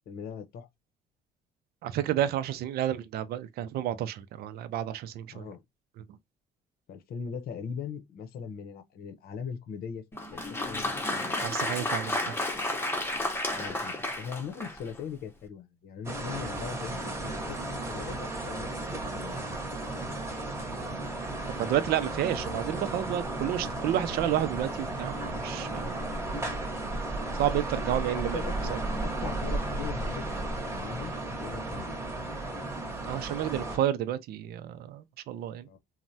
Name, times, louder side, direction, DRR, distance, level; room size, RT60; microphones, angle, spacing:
voice 1, 0.1-0.7 5.3-5.6 6.9-10.0 10.3-11.4 13.5-19.4 28.1-28.7 29.0-30.3 30.5-31.1 31.4-32.0 35.6-35.8, left 6 dB, 65° left, 0.7 m, -40 dB
voice 2, 1.8-5.5 11.4-12.4 21.6-26.0 27.4-28.4 28.7-28.8 33.1-35.7, right 11 dB, 70° right, 0.5 m, -30 dB
Applause, 10.1-15.0, left 1 dB, 15° left, 0.7 m, -32 dB
sound 1, 16.0-33.8, right 2 dB, 15° right, 0.9 m, -34 dB
3.2 x 2.1 x 2.6 m
cardioid pair, 110°, 17 cm